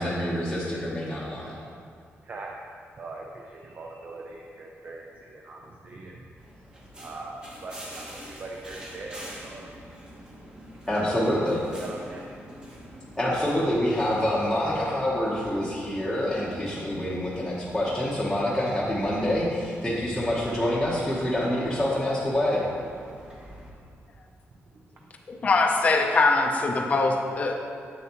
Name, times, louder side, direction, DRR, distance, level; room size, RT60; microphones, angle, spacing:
voice 1, 0.0-1.6 10.9-11.6 13.2-22.6, left 1 dB, 5° left, -8 dB, 0.9 m, -26 dB
voice 2, 3.6-5.6 5.8-6.2 7.0-9.7 11.2-11.3 11.8-12.2, right 3 dB, 35° right, -1 dB, 0.5 m, -41 dB
sound 1, 6.4-23.7, equal, 20° right, 1.1 m, -45 dB
voice 3, 25.3-27.6, left 3 dB, 30° left, 1 dB, 0.5 m, -22 dB
7.6 x 7.1 x 2.9 m, 2.2 s
wide cardioid pair, 150°, 5 cm